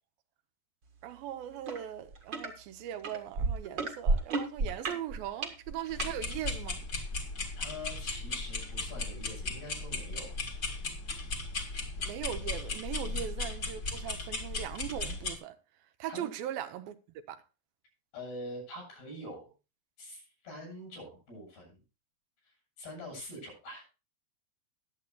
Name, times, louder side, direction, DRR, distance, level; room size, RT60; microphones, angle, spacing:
voice 1, 1.0-6.8 12.1-15.6 16.0-17.0 17.3-17.4, right 11 dB, 80° right, 2.4 m, -39 dB
sound 1, 1.7-1.8 2.1-2.5 3.0-6.1 6.8-6.9, right 3 dB, 45° right, 1.6 m, -31 dB
sound 2, 5.9-15.4, left 3 dB, 35° left, 1.6 m, -36 dB
voice 2, 7.6-10.4 13.0-13.2 16.1-16.3 18.1-19.5 20.0-21.8 22.8-23.8, left 1 dB, 85° left, 9.6 m, -44 dB
21.0 x 8.1 x 2.3 m
omnidirectional pair, 4.4 m